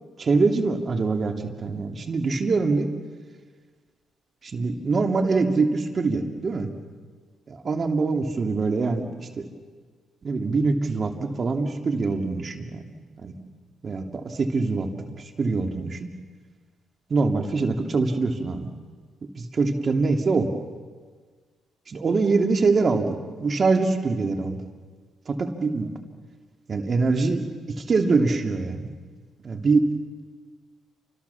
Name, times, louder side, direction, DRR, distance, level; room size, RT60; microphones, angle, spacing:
voice 1, 0.2-2.9 4.4-6.7 7.5-9.5 10.2-13.3 13.8-14.9 15.4-16.1 17.1-18.7 19.4-20.5 21.9-24.6 25.3-25.9 26.7-28.9 29.4-29.9, right 3 dB, 40° right, 4 dB, 2.9 m, -24 dB
29.5 x 26.5 x 7.2 m, 1.5 s
cardioid pair, 90°, 0 cm